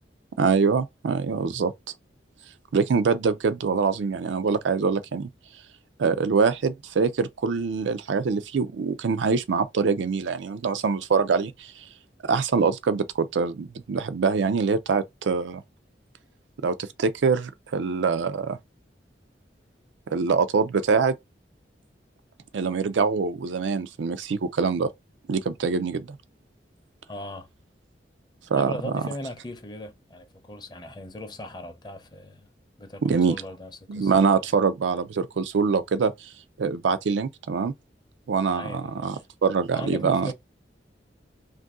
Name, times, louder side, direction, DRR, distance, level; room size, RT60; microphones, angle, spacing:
voice 1, 0.4-1.7 2.7-5.3 6.0-11.9 12.3-15.6 16.6-18.6 20.1-21.1 22.5-24.9 25.3-26.2 28.5-29.0 33.0-33.4 33.9-36.3 36.6-37.7 38.3-39.2 39.4-40.3, right 5 dB, 90° right, 0.4 m, -24 dB
voice 2, 27.1-27.5 28.5-32.5 32.8-34.5 38.5-39.2 39.7-40.3, left 1 dB, 25° left, 0.6 m, -39 dB
2.6 x 2.5 x 3.5 m
head